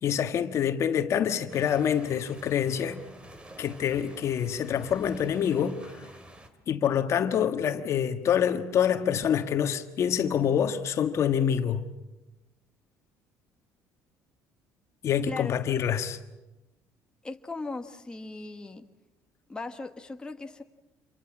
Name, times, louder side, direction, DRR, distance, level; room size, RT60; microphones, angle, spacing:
voice 1, 0.0-3.0 3.6-5.8 6.7-11.9 15.0-16.2, left 8 dB, 50° left, 1.5 m, -26 dB
sound 1, 1.5-6.5, right 1 dB, 20° right, 2.6 m, -49 dB
voice 2, 15.3-15.6 17.2-18.8 19.5-20.6, left 3 dB, 15° left, 1.3 m, -38 dB
27.5 x 23.0 x 7.4 m
cardioid pair, 110°, 6 cm